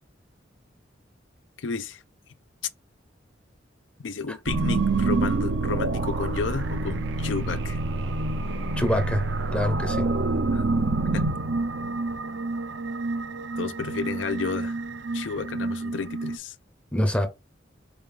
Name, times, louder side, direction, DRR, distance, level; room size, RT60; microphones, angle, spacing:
voice 1, 1.6-2.0 4.0-7.8 10.5-10.6 11.1-11.3 13.6-14.8 15.1-16.6, left 5 dB, 85° left, 0.5 m, -32 dB
sound 1, 4.5-16.4, right 3 dB, 70° right, 0.5 m, -27 dB
voice 2, 8.8-9.2 9.5-10.0 16.9-17.3, equal, 5° left, 0.6 m, -24 dB
5.0 x 2.4 x 3.2 m
head